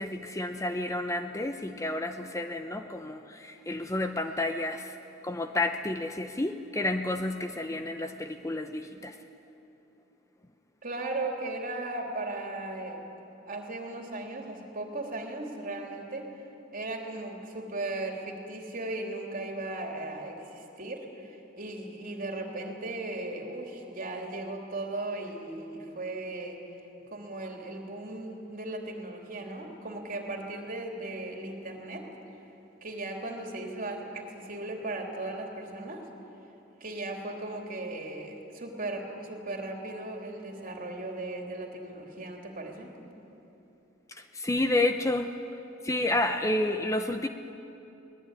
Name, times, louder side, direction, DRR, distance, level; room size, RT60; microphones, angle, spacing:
voice 1, 0.0-4.9 5.2-9.1 44.1-45.3 45.8-47.3, left 2 dB, 15° left, 7 dB, 0.8 m, -30 dB
voice 2, 10.8-13.0 13.5-16.3 16.7-26.6 27.1-32.1 32.8-36.0 36.8-42.9, right 2 dB, 45° right, 1 dB, 3.4 m, -37 dB
23.5 x 19.0 x 9.9 m, 2.9 s
head